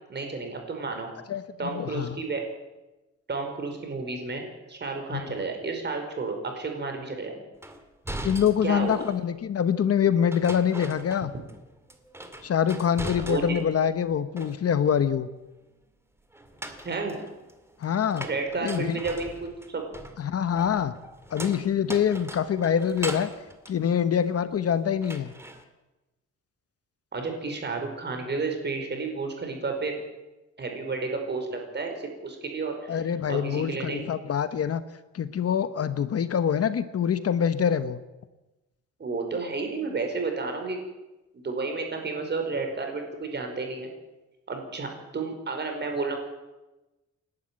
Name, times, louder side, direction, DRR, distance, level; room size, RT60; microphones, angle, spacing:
voice 1, 0.1-1.1 1.6-2.4 3.3-4.4 4.7-7.4 8.6-9.0 13.2-13.4 16.8-17.2 18.2-19.8 27.1-30.0 30.6-33.0 33.3-34.1 39.0-40.8 41.3-43.9 44.5-46.2, right 3 dB, 35° right, 4 dB, 5.0 m, -31 dB
voice 2, 1.3-2.2 5.1-5.2 8.2-11.3 12.4-15.3 17.8-18.3 18.6-19.0 20.2-20.9 21.3-23.3 23.7-25.3 32.9-34.8 35.1-38.0, left 8 dB, 50° left, 12 dB, 1.0 m, -25 dB
sound 1, 7.6-9.3 10.3-11.6 11.9-13.8 14.1-14.9 16.3-24.6 25.0-25.6, right 1 dB, 10° right, 2.0 m, -40 dB
29.0 x 11.5 x 8.9 m, 1.1 s
wide cardioid pair, 160°, 30 cm